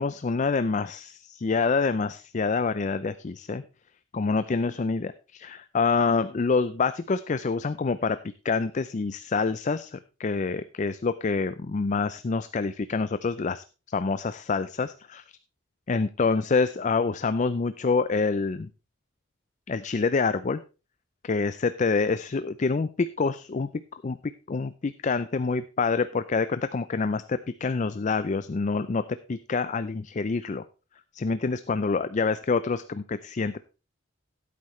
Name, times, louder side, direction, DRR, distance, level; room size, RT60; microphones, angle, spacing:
voice 1, 0.0-3.6 4.1-8.2 8.4-13.6 13.9-15.2 15.9-18.7 19.7-20.6 21.2-29.0 29.3-30.6 31.1-33.6, left 4 dB, 40° left, 13 dB, 0.4 m, -27 dB
15.0 x 8.5 x 3.1 m, 0.32 s
head